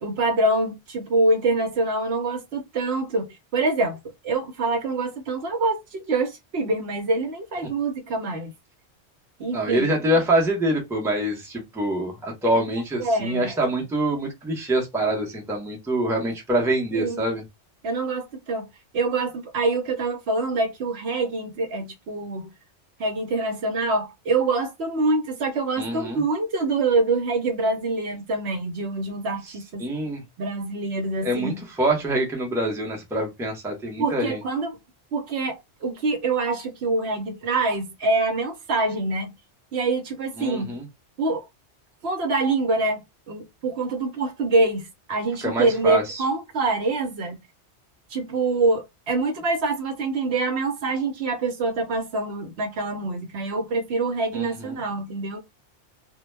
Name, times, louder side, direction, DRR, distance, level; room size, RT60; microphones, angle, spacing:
voice 1, 0.0-4.0 4.2-8.5 9.4-9.9 13.0-13.6 16.9-17.2 17.8-22.5 23.0-29.9 30.4-31.6 34.0-34.8 35.1-39.3 39.7-40.8 41.2-41.5 42.0-47.4 48.1-55.4, right 3 dB, 70° right, 0.9 m, -25 dB
voice 2, 9.5-17.4 25.8-26.2 29.8-30.2 31.2-34.4 40.4-40.9 45.4-46.2 54.3-54.7, right 1 dB, 5° right, 0.6 m, -25 dB
2.2 x 2.1 x 3.1 m
omnidirectional pair, 1.2 m